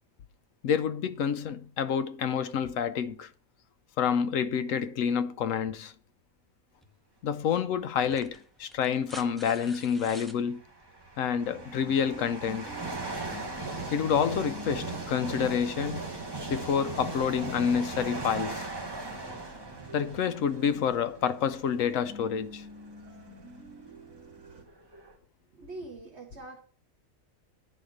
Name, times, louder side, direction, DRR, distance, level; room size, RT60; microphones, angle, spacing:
voice 1, 0.6-3.3 4.0-5.9 7.2-10.6 11.2-12.7 13.9-16.0 16.5-18.7 19.9-22.6, left 7 dB, 75° left, 1.0 m, -28 dB
sound 1, 6.8-6.9 7.9-10.4 11.9-12.0, equal, ahead, 0.4 m, -47 dB
sound 2, 8.0-8.3 9.4-9.5 10.3-21.7 22.3-22.5 23.3-23.4 23.6-25.1, right 3 dB, 20° right, 1.2 m, -38 dB
sound 3, 11.4-24.6, equal, 80° right, 2.1 m, -48 dB
voice 2, 25.5-26.6, right 2 dB, 55° right, 1.3 m, -43 dB
10.0 x 4.3 x 6.4 m
omnidirectional pair, 1.4 m